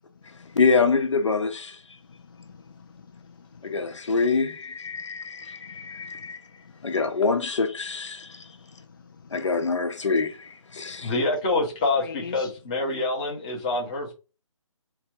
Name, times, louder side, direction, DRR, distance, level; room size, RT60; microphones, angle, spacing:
voice 1, 0.6-1.8 3.6-6.4 6.8-8.5 9.3-11.1, left 4 dB, 60° left, 0.9 m, -25 dB
voice 2, 2.1-4.0 5.7-6.3 6.6-6.7 8.3-9.6 12.0-12.5, left 5 dB, 40° left, 0.4 m, -46 dB
voice 3, 11.0-14.1, left 2 dB, 15° left, 0.8 m, -26 dB
4.2 x 2.3 x 4.4 m
hypercardioid pair, 170°, 17 cm